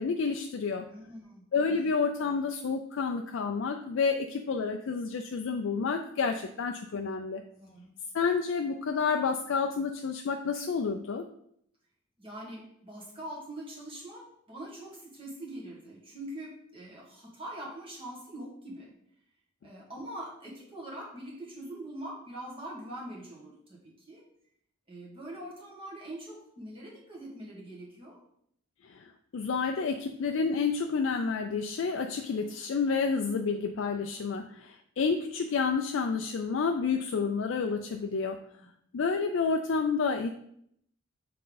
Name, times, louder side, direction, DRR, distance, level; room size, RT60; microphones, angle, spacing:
voice 1, 0.0-0.8 1.5-7.4 8.1-11.2 28.8-38.4 38.9-40.3, left 5 dB, 65° left, 5 dB, 0.4 m, -29 dB
voice 2, 0.8-1.5 7.5-7.9 12.2-18.9 19.6-24.3 24.9-28.2 38.6-38.7, right 1 dB, 25° right, -3 dB, 1.6 m, -43 dB
6.7 x 3.7 x 3.9 m, 0.71 s
head